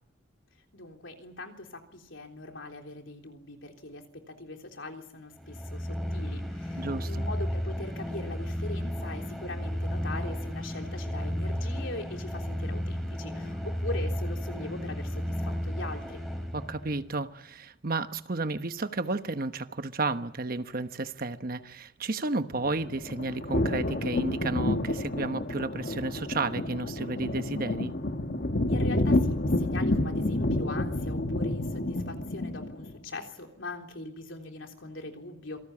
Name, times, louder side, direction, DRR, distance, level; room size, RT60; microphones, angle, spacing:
voice 1, 0.7-16.2 28.7-35.6, left 2 dB, 70° left, 3.6 m, -41 dB
sound 1, 5.3-17.0, equal, ahead, 4.0 m, -33 dB
voice 2, 6.8-7.2 16.5-27.9, right 3 dB, 45° right, 1.1 m, -32 dB
sound 2, 22.5-32.9, left 1 dB, 50° left, 1.6 m, -29 dB
27.0 x 18.5 x 8.6 m
head